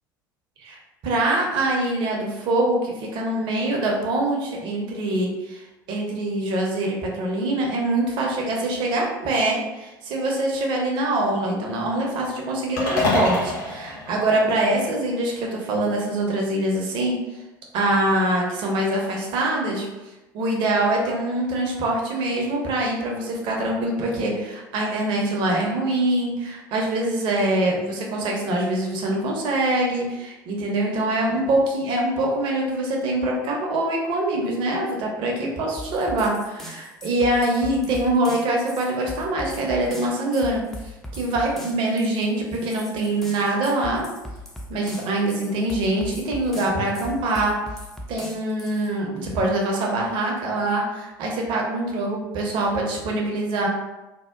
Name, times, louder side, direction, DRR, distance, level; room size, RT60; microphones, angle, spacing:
voice 1, 0.6-17.2 17.7-19.9 20.3-44.1 44.7-47.5 48.1-53.7, right 1 dB, 50° right, -1 dB, 0.6 m, -24 dB
sound 1, 12.8-15.1, left 2 dB, 55° left, 0.9 m, -26 dB
sound 2, 35.8-48.9, equal, 5° left, 0.4 m, -39 dB
2.7 x 2.1 x 2.4 m, 1.0 s
figure-of-eight pair, 65°, 11 cm